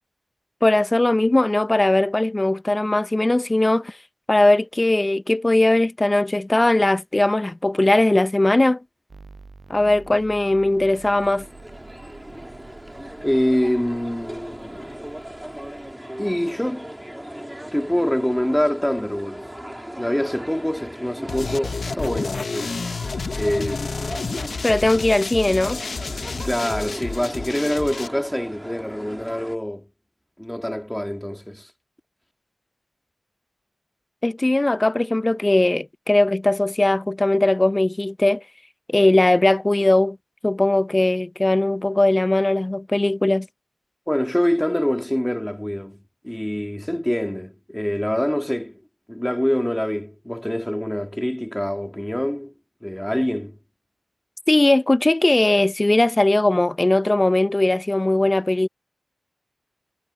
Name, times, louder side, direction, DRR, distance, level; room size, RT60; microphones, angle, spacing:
voice 1, 0.6-4.0 4.3-8.8 9.7-11.5 23.6-23.8 24.6-25.8 34.2-38.4 38.9-40.2 40.4-43.5 54.5-58.7, left 2 dB, 35° left, 0.8 m, -19 dB
sound 1, 9.1-15.9, right 3 dB, 65° right, 7.1 m, -47 dB
sound 2, 10.7-29.6, equal, 10° right, 3.5 m, -38 dB
voice 2, 13.2-15.0 16.2-16.9 17.7-19.5 20.0-22.8 23.3-23.8 26.4-29.9 30.4-31.7 44.1-48.8 49.1-52.5 52.8-53.6, equal, 10° left, 3.1 m, -25 dB
sound 3, 21.3-28.1, left 4 dB, 80° left, 1.2 m, -30 dB
cardioid pair, 45°, 0 cm